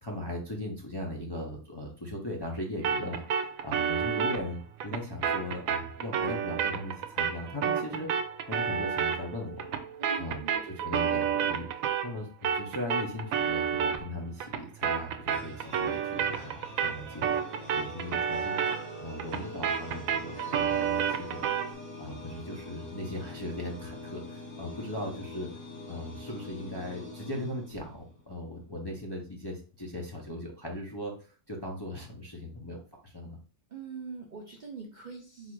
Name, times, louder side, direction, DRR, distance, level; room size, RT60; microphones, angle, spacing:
voice 1, 0.0-8.1 8.4-9.8 10.2-12.3 12.5-17.4 17.7-18.7 19.0-21.5 22.0-25.5 25.9-33.4, left 1 dB, 30° left, -1 dB, 0.5 m, -38 dB
sound 1, 2.8-12.2 12.4-21.7, right 7 dB, 85° right, 1.0 m, -31 dB
voice 2, 10.0-10.6 33.7-35.5, right 5 dB, 50° right, 1 dB, 0.6 m, -43 dB
sound 2, 15.3-28.2, left 2 dB, 85° left, 1.8 m, -45 dB
4.0 x 2.4 x 4.5 m, 0.38 s
omnidirectional pair, 1.4 m